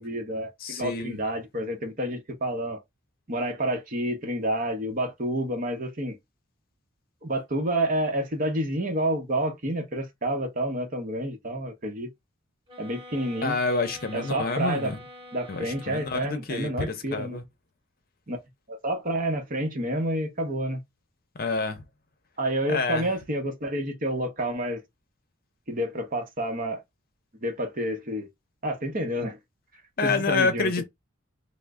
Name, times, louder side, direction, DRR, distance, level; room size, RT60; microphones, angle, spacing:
voice 1, 0.0-2.8 3.3-6.2 7.2-12.1 12.8-13.6 14.1-14.9 15.3-17.4 18.3-18.4 18.7-20.8 22.4-24.8 25.7-26.8 27.4-28.3 28.6-29.4 30.0-30.8, right 1 dB, 40° right, 0.9 m, -29 dB
voice 2, 0.6-1.2 13.4-15.0 15.5-17.4 21.4-21.8 22.7-23.1 30.0-30.8, left 3 dB, 45° left, 0.7 m, -28 dB
sound 1, 12.7-16.6, left 1 dB, 25° right, 2.2 m, -46 dB
3.1 x 2.1 x 3.5 m
head